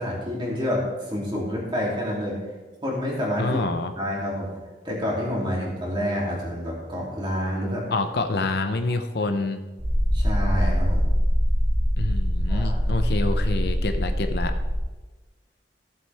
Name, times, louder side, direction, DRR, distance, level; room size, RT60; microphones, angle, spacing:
voice 1, 0.0-2.4 2.8-3.6 4.0-4.5 4.8-7.9 8.9-9.0 9.3-9.4 10.1-11.0 12.5-13.0, equal, 25° right, -4 dB, 2.9 m, -28 dB
voice 2, 3.4-3.9 7.9-9.6 12.0-14.5, left 3 dB, 60° left, 7 dB, 0.7 m, -27 dB
sound 1, 9.8-14.8, equal, 65° right, 2.9 m, -23 dB
15.5 x 7.7 x 3.5 m, 1.2 s
head